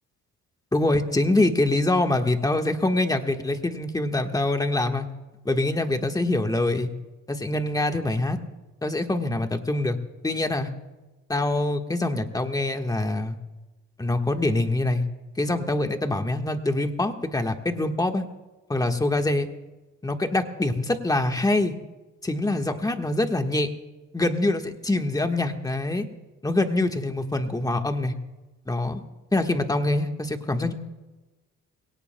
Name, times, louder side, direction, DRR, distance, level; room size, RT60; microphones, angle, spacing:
voice 1, 0.7-5.1 5.4-6.9 7.3-8.4 8.8-10.0 10.2-10.7 11.3-13.4 14.0-15.1 15.4-18.2 18.7-19.5 20.0-21.7 22.2-23.7 24.1-26.1 26.4-28.1 28.7-29.0 29.3-30.7, left 2 dB, 10° left, 5 dB, 1.4 m, -24 dB
23.0 x 18.0 x 2.2 m, 1.1 s
cardioid pair, 90°, 30 cm